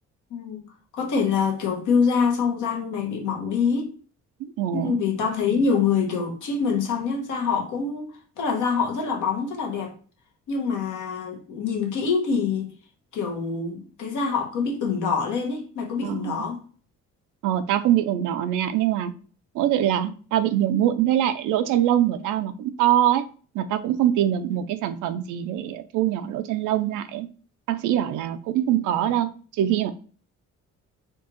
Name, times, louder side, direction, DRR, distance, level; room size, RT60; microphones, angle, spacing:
voice 1, 0.3-0.7 0.9-3.9 4.7-9.9 10.5-12.7 13.1-16.6, left 5 dB, 80° left, 1.1 m, -25 dB
voice 2, 4.4-5.0 16.0-16.4 17.4-19.1 19.5-23.2 23.5-27.3 27.7-29.9, right 11 dB, 85° right, 0.5 m, -23 dB
4.4 x 2.4 x 3.0 m
cardioid pair, 90°, 30 cm